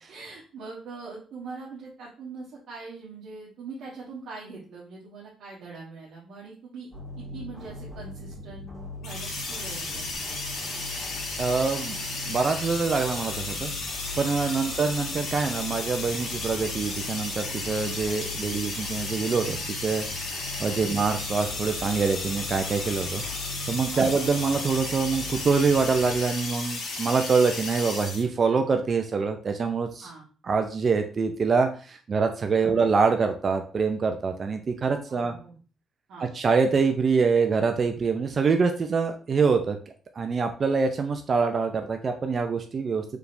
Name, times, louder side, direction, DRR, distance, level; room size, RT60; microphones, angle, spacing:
voice 1, 0.1-6.9 7.2-10.7 14.4-14.6 20.8-20.9 23.9-24.0 30.0-30.3 32.6-32.8 35.1-35.6 36.1-36.3, right 4 dB, 65° right, -6 dB, 1.2 m, -42 dB
sound 1, 6.9-26.2, left 2 dB, 5° left, 1.8 m, -40 dB
sound 2, 9.0-28.2, left 3 dB, 75° left, 1.4 m, -34 dB
voice 2, 11.4-12.0 12.3-13.7 14.2-20.0 20.6-23.2 23.7-30.1 30.5-35.3 36.3-39.8 40.2-43.0, right 5 dB, 30° right, 6 dB, 0.4 m, -25 dB
4.8 x 3.4 x 2.5 m, 0.39 s
cardioid pair, 170°, 0 cm